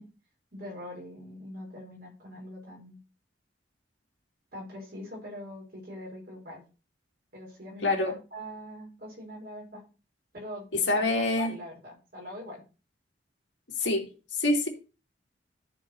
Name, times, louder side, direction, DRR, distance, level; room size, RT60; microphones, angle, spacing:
voice 1, 0.5-3.0 4.5-6.6 7.3-9.8 10.3-10.7 10.9-12.6, left 1 dB, 55° right, -2 dB, 5.1 m, -42 dB
voice 2, 7.8-8.1 10.7-11.5 13.8-14.7, left 2 dB, 85° left, 1 dB, 2.5 m, -26 dB
13.0 x 4.8 x 4.4 m, 0.33 s
head